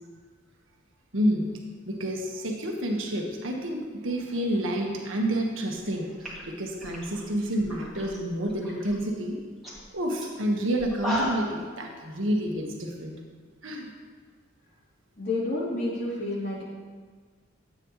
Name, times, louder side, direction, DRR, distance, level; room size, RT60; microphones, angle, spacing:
voice 1, 1.1-1.5 1.9-9.4 9.9-13.1 13.6-13.9, right 1 dB, 80° right, 1 dB, 1.6 m, -29 dB
sound 1, 5.8-5.9 6.2-8.2 8.5-8.9 9.3-9.4 9.6-9.8 10.2-10.3 10.8-11.6, equal, ahead, 2.5 m, -34 dB
voice 2, 15.2-16.6, left 2 dB, 55° left, -7 dB, 3.3 m, -29 dB
13.0 x 8.9 x 3.2 m, 1.5 s
head